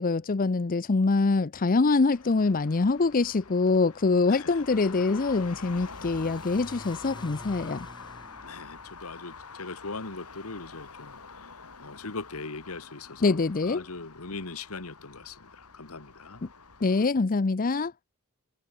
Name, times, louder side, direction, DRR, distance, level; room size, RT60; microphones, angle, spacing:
voice 1, 0.0-7.9 13.2-13.9 16.4-16.5 16.8-17.9, left 3 dB, 40° left, 0.6 m, -24 dB
Traffic noise roadway noise, 2.1-17.1, left 4 dB, 90° left, 4.1 m, -46 dB
voice 2, 4.3-4.6 8.4-11.5 11.8-16.4, left 3 dB, 70° left, 1.8 m, -40 dB
Car / Accelerating revving vroom, 4.5-11.2, left 1 dB, 20° left, 3.2 m, -51 dB
head